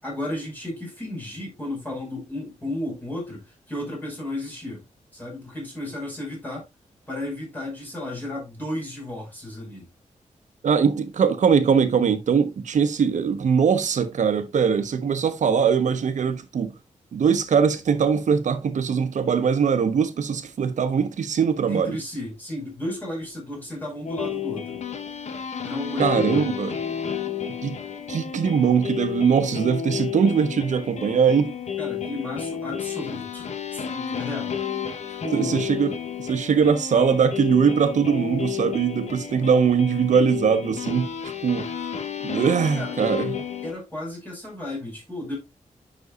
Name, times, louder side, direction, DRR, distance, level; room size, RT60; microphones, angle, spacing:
voice 1, 0.0-4.8 5.1-6.6 7.1-9.9 21.7-24.8 25.6-26.6 31.8-34.6 35.1-35.7 42.7-43.0 43.6-45.4, left 1 dB, 15° left, 5.4 m, -33 dB
voice 2, 10.6-16.7 17.1-22.0 26.0-26.8 27.6-27.8 28.1-31.5 35.3-35.9 36.2-41.6 42.2-43.4, right 6 dB, 70° right, 1.1 m, -21 dB
sound 1, 24.1-43.7, left 8 dB, 60° left, 1.1 m, -31 dB
9.5 x 6.4 x 2.5 m
wide cardioid pair, 160°, 13 cm